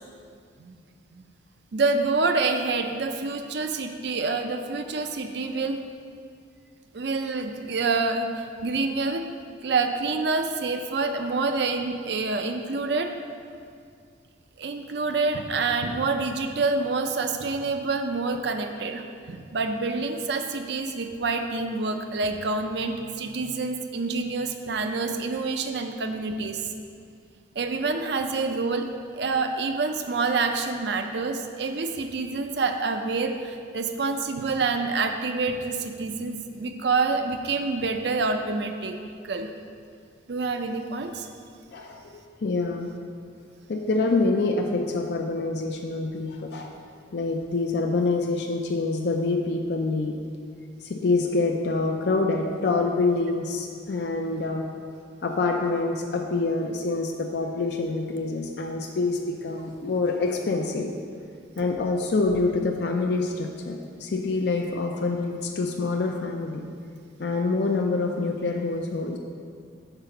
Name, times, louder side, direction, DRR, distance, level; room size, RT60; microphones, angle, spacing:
voice 1, 1.7-5.8 6.9-9.2 9.6-13.1 14.6-26.7 27.6-39.0 39.2-39.5 40.3-41.3, right 3 dB, 65° right, 6 dB, 0.5 m, -27 dB
voice 2, 41.7-42.9 43.7-46.7 47.1-50.1 50.8-54.7 55.2-60.9 61.6-66.6 67.2-69.2, left 3 dB, 60° left, 1 dB, 0.5 m, -26 dB
6.8 x 4.9 x 5.7 m, 2.2 s
head